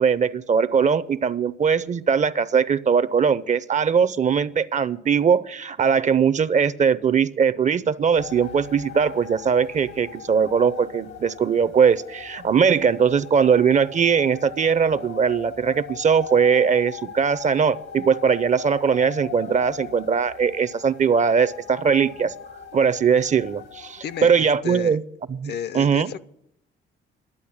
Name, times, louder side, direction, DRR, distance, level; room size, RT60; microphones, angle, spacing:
voice 1, 0.0-22.3 22.7-25.0 25.3-26.1, right 6 dB, 35° right, 16 dB, 0.6 m, -20 dB
sound 1, 8.2-24.6, left 8 dB, 90° left, 2.1 m, -40 dB
voice 2, 24.0-25.0 25.4-26.2, left 8 dB, 55° left, 16 dB, 0.6 m, -32 dB
12.0 x 8.2 x 8.6 m, 0.76 s
cardioid pair, 90°, 20 cm